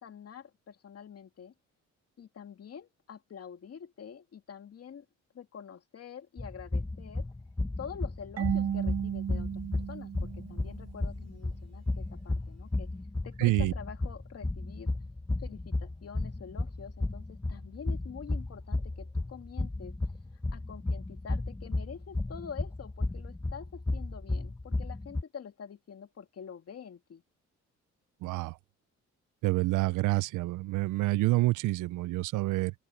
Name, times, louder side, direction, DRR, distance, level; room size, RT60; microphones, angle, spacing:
voice 1, 0.0-1.5 2.2-5.1 5.3-7.3 7.8-12.9 13.2-14.9 15.4-20.0 20.5-27.2, left 7 dB, 50° left, 2.4 m, -46 dB
sound 1, 6.4-25.2, left 2 dB, 10° left, 1.3 m, -34 dB
Marimba xylophone / Wood, 8.4-11.1, right 9 dB, 55° right, 1.5 m, -34 dB
voice 2, 13.4-13.7 28.2-28.6 29.4-32.7, right 19 dB, 90° right, 0.6 m, -27 dB
open air
cardioid pair, 90°, 30 cm